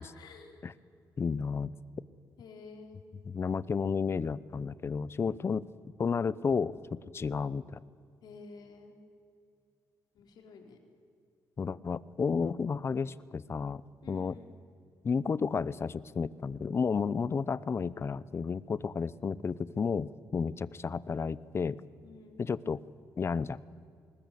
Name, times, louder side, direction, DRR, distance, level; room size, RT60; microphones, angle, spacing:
voice 1, 0.1-0.6 2.4-3.0 8.2-8.9 10.1-10.8 14.0-14.5 22.0-22.4, left 4 dB, 70° left, 3 dB, 3.8 m, -51 dB
voice 2, 1.2-1.7 3.2-5.6 6.0-7.8 11.6-13.8 14.1-14.4 15.0-21.8 22.4-22.8 23.2-23.6, left 5 dB, 35° left, 19 dB, 0.7 m, -32 dB
20.5 x 20.0 x 8.5 m, 2.4 s
cardioid pair, 100°, 7 cm